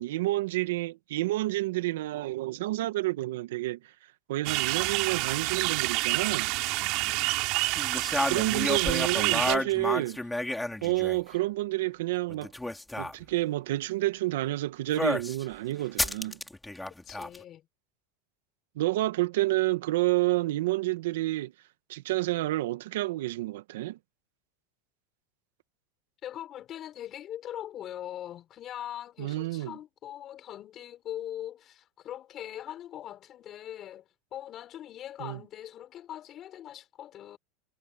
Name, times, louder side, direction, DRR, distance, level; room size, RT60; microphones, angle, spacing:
voice 1, 0.0-3.8 4.3-6.5 8.3-10.2 10.8-12.5 13.0-16.4 18.7-21.5 21.9-24.0 29.2-29.8 35.2-35.4, right 17 dB, 80° right, 1.4 m, -29 dB
sound 1, 4.4-9.5, right 23 dB, 55° right, 3.1 m, -28 dB
voice 2, 6.8-7.4 17.0-17.7 26.2-37.4, left 11 dB, 35° left, 4.4 m, -41 dB
sound 2, 7.7-11.3 12.3-13.1 15.0-15.4 16.0-17.4, left 1 dB, 5° left, 4.5 m, -31 dB
supercardioid pair, 130°, 0 cm